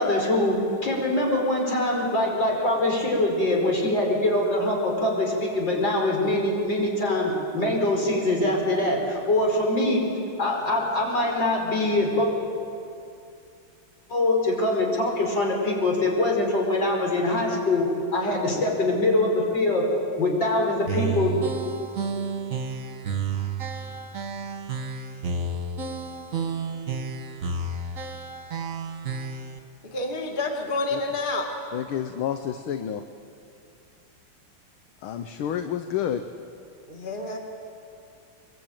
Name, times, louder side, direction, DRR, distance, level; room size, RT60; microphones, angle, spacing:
voice 1, 0.0-12.3 14.1-19.9 20.2-21.5, left 1 dB, 55° left, -1 dB, 5.6 m, -23 dB
sound 1, 20.9-29.6, right 4 dB, 40° right, 1.7 m, -31 dB
voice 2, 29.9-31.5 36.9-37.4, left 2 dB, 25° left, 1 dB, 2.2 m, -28 dB
voice 3, 31.7-33.0 35.0-36.2, left 9 dB, 75° left, 7 dB, 1.7 m, -29 dB
24.0 x 22.5 x 9.1 m, 2.6 s
omnidirectional pair, 2.4 m